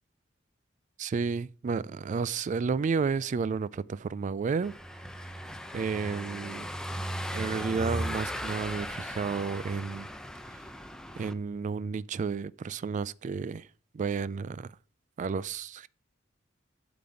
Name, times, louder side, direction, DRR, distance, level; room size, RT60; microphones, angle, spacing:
voice 1, 1.0-4.7 5.7-6.7 7.3-10.1 11.2-13.7 13.9-14.7 15.2-15.9, right 5 dB, 40° right, 0.3 m, -31 dB
Car passing by / Engine, 4.6-11.3, equal, 5° left, 0.6 m, -37 dB
8.3 x 4.0 x 6.9 m
head